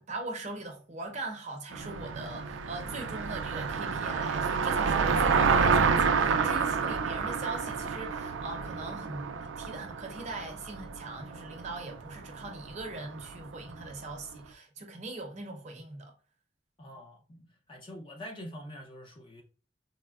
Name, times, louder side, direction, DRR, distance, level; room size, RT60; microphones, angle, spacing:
voice 1, 0.0-16.1, right 2 dB, 35° right, 0.6 m, -41 dB
Car passing by, 1.7-14.0, right 5 dB, 80° right, 0.3 m, -29 dB
voice 2, 16.8-19.4, equal, 25° left, 0.5 m, -45 dB
4.1 x 2.1 x 2.3 m
head